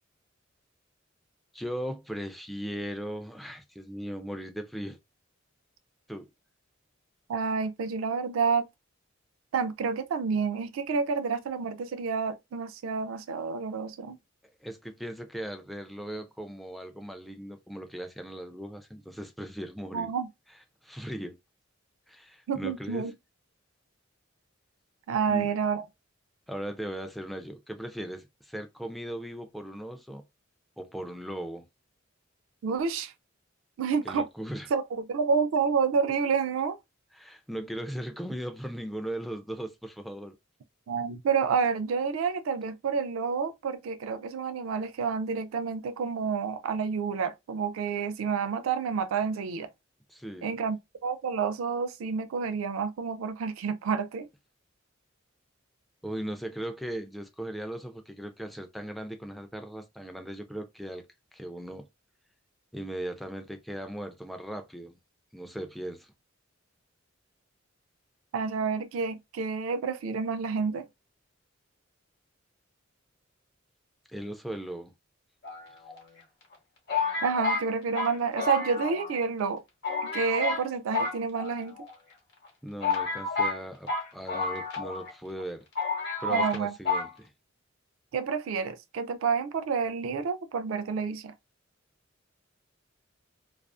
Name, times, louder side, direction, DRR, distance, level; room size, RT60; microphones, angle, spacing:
voice 1, 1.5-5.0 6.1-6.3 14.6-20.1 20.8-21.4 22.1-23.1 25.3-25.5 26.5-30.2 30.8-31.6 34.0-34.7 37.1-40.4 50.1-50.5 56.0-61.0 61.3-61.9 62.7-65.0 65.3-66.1 74.1-74.9 82.6-85.7 86.2-87.3, right 1 dB, ahead, 0.3 m, -38 dB
voice 2, 7.3-8.7 9.5-14.2 19.9-20.3 22.5-23.1 25.1-25.8 32.6-33.1 33.8-34.3 34.7-36.8 40.9-49.7 50.4-54.3 68.3-70.8 77.2-79.6 80.1-81.8 86.3-86.7 88.1-91.3, right 5 dB, 85° right, 0.4 m, -29 dB
sound 1, 75.4-76.2 76.9-79.2 79.5-79.6 79.8-80.7 80.9-81.9 82.4-82.5 82.8-85.1 85.4-85.5 85.8-86.6 86.9-87.1, left 4 dB, 55° left, 0.9 m, -30 dB
2.4 x 2.3 x 2.2 m
head